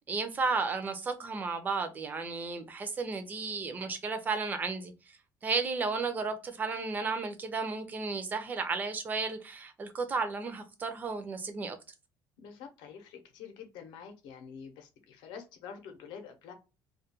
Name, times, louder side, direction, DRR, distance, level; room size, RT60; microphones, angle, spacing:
voice 1, 0.1-4.9 5.4-11.8, right 4 dB, 20° right, 0.4 m, -33 dB
voice 2, 12.4-16.5, left 7 dB, 75° left, 0.6 m, -47 dB
2.3 x 2.1 x 2.9 m
cardioid pair, 170°, 8 cm